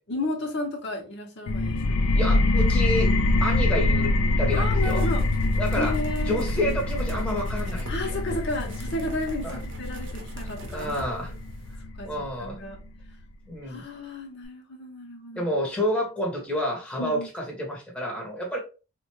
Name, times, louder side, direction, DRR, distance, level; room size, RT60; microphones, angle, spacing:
voice 1, 0.1-2.0 4.5-5.3 5.7-6.4 7.9-10.9 11.9-12.8 13.7-15.5 17.0-17.3, left 2 dB, 55° left, 0.7 m, -33 dB
sound 1, 1.5-12.9, left 2 dB, 85° left, 0.4 m, -25 dB
voice 2, 2.1-3.1 3.4-5.0 5.6-5.9 6.3-8.2 9.4-9.6 10.7-11.3 12.0-12.6 13.5-13.9 15.3-18.6, equal, 5° left, 0.8 m, -29 dB
sound 2, 4.8-11.8, equal, 55° right, 0.7 m, -41 dB
3.5 x 2.2 x 3.0 m
head